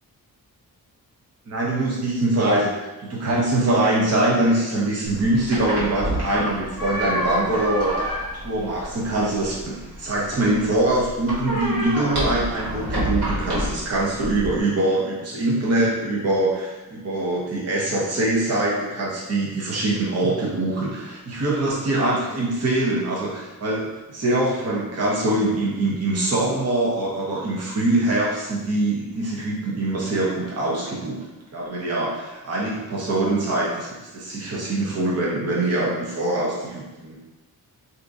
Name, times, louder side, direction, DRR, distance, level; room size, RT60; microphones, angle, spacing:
voice 1, 1.5-2.7 3.0-31.2 31.5-37.2, right 2 dB, 40° right, -5 dB, 0.8 m, -23 dB
sound 1, 5.1-14.6, equal, 85° right, 1.4 m, -29 dB
2.8 x 2.5 x 3.6 m, 1.1 s
wide cardioid pair, 145°, 37 cm